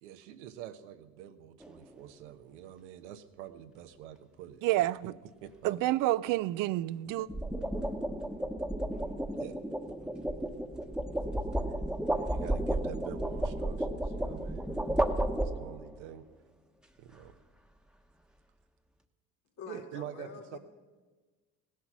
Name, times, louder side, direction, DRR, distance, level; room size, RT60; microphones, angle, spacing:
voice 1, 0.0-5.1 5.4-5.8 9.3-9.5 12.1-14.8 15.4-16.3 17.0-17.3 19.7-20.6, right 11 dB, 90° right, 1.0 m, -46 dB
sound 1, 1.6-1.9 7.1-16.0, right 1 dB, ahead, 1.1 m, -33 dB
voice 2, 4.6-5.1 5.6-7.3, right 15 dB, 65° right, 0.5 m, -29 dB
voice 3, 19.6-20.6, left 6 dB, 60° left, 2.9 m, -46 dB
17.0 x 10.5 x 6.1 m
supercardioid pair, 75°, 35 cm